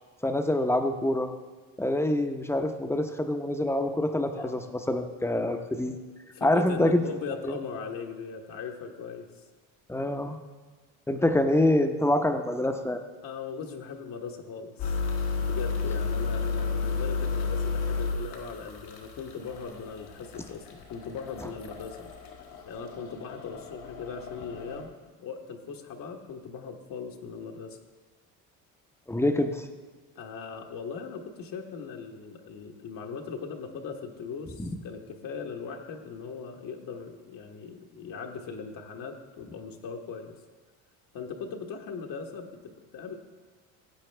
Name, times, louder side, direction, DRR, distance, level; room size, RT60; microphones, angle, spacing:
voice 1, 0.2-1.3 1.8-6.0 6.4-7.1 7.4-7.6 9.9-10.4 11.1-13.0 29.1-29.6, left 1 dB, 5° left, 6 dB, 0.8 m, -26 dB
voice 2, 4.3-4.6 6.3-9.3 11.1-11.2 13.2-15.0 15.4-22.1 22.6-24.9 25.2-27.8 30.1-40.3 41.1-43.1, left 5 dB, 60° left, 2 dB, 1.3 m, -39 dB
sound 1, 14.8-24.8, left 4 dB, 80° left, 1.8 m, -32 dB
14.5 x 8.3 x 3.4 m, 1.4 s
supercardioid pair, 90°, 39 cm